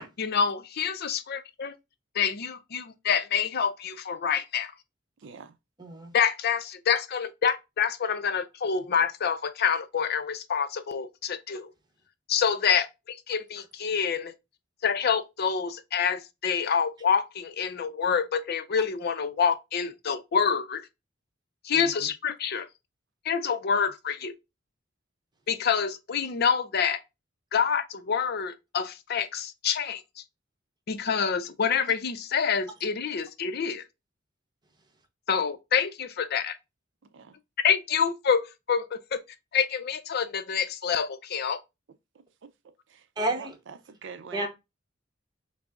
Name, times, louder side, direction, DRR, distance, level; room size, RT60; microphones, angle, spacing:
voice 1, 0.2-1.7 2.2-4.7 6.1-11.7 12.3-14.3 14.8-20.8 21.6-22.7 23.3-24.3 25.5-27.0 27.5-30.0 30.9-33.8 35.3-36.5 37.6-39.2 39.5-41.6, left 7 dB, 55° left, 0.5 m, -27 dB
voice 2, 5.2-5.5 21.7-22.1 37.1-37.4 43.3-44.5, right 6 dB, 65° right, 0.5 m, -44 dB
voice 3, 5.8-6.1 43.2-43.6 44.3-44.5, right 1 dB, 20° right, 0.8 m, -30 dB
5.9 x 2.0 x 3.5 m
head